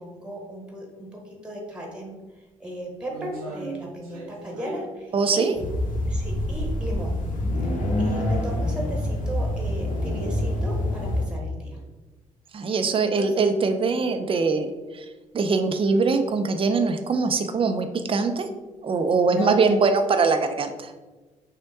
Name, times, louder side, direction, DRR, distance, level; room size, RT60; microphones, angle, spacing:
voice 1, 0.0-5.5 6.1-7.2 8.0-11.8 13.0-13.3 19.3-19.6, equal, 5° right, 0 dB, 1.2 m, -36 dB
sound 1, 1.7-1.8 2.3-7.3 7.7-7.8 8.6-8.7 9.0-9.1 10.1-10.2 10.5-10.6 11.1-11.3 11.6-11.7 13.8-13.9 15.2-15.5 15.9-16.3 16.7-16.9 17.2-17.3 18.4-18.6 19.2-19.9 20.2-20.3, right 2 dB, 90° right, 0.8 m, -40 dB
voice 2, 5.1-5.5 12.5-15.1 15.3-18.5 18.8-20.9, right 4 dB, 30° right, 7 dB, 0.5 m, -22 dB
sound 2, 5.6-11.2, left 1 dB, 50° left, 0.8 m, -26 dB
6.1 x 2.1 x 2.7 m, 1.2 s
figure-of-eight pair, 45°, 18 cm